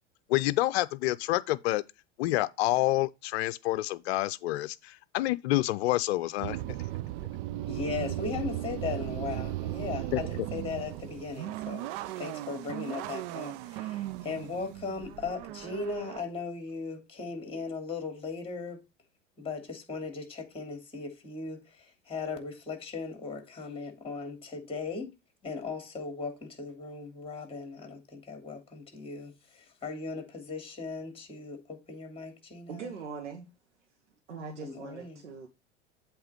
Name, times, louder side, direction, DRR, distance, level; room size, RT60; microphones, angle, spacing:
voice 1, 0.3-1.8 2.2-6.6 10.1-10.2, left 17 dB, 65° left, 0.6 m, -28 dB
sound 1, 6.4-16.2, right 14 dB, 55° right, 0.7 m, -37 dB
voice 2, 7.7-11.9 12.2-18.8 19.4-25.1 25.4-32.9 34.6-35.2, left 4 dB, 15° left, 2.8 m, -38 dB
voice 3, 32.7-33.5 34.3-35.5, right 5 dB, 85° right, 1.5 m, -41 dB
8.0 x 3.3 x 6.3 m
hypercardioid pair, 90°, 35 cm